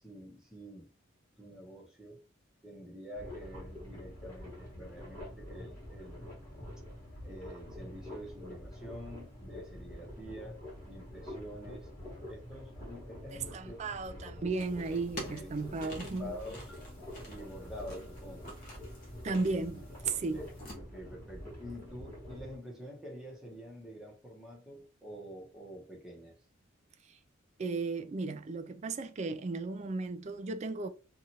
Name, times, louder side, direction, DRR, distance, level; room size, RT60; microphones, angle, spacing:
voice 1, 0.0-0.9 1.4-2.2 2.6-6.3 7.2-11.9 12.3-14.0 15.3-15.5 15.8-15.9 16.2-16.8 17.2-18.6 20.1-20.5 20.8-26.4, equal, 5° right, 0.9 m, -47 dB
sound 1, 3.1-22.6, left 1 dB, 15° left, 1.2 m, -46 dB
sound 2, 5.2-20.6, left 1 dB, 65° left, 0.8 m, -63 dB
voice 2, 13.3-16.3 19.2-20.4 27.1-27.2 27.6-30.9, right 3 dB, 35° right, 0.3 m, -35 dB
sound 3, 14.6-20.8, left 1 dB, 40° left, 1.1 m, -49 dB
2.8 x 2.4 x 2.9 m
head